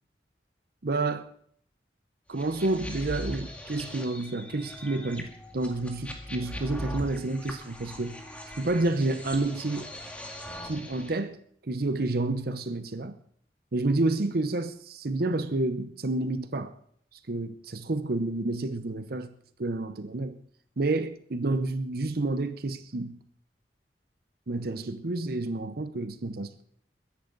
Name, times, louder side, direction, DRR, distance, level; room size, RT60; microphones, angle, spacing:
voice 1, 0.8-1.3 2.3-8.2 8.6-9.9 10.6-11.4 11.7-13.1 13.7-16.7 17.3-19.3 19.6-20.4 20.8-23.2 24.5-26.6, right 2 dB, 60° right, 10 dB, 0.8 m, -29 dB
sound 1, 2.4-11.2, left 1 dB, 10° left, 2.1 m, -40 dB
22.0 x 10.5 x 4.0 m, 0.65 s
head